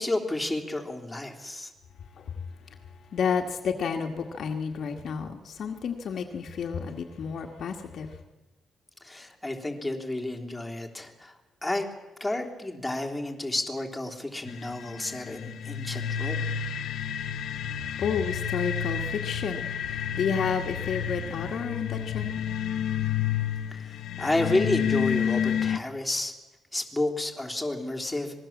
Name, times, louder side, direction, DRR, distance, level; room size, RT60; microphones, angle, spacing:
voice 1, 0.0-1.7 9.0-11.3 11.6-11.8 12.2-16.5 23.7-26.3 26.7-28.4, left 2 dB, 5° left, 0 dB, 3.4 m, -31 dB
voice 2, 3.1-8.1 18.0-22.4, left 6 dB, 55° left, 3 dB, 2.0 m, -31 dB
sound 1, 14.5-25.8, left 8 dB, 75° left, 1.3 m, -30 dB
26.0 x 20.5 x 7.5 m, 1.1 s
cardioid pair, 130°, 0 cm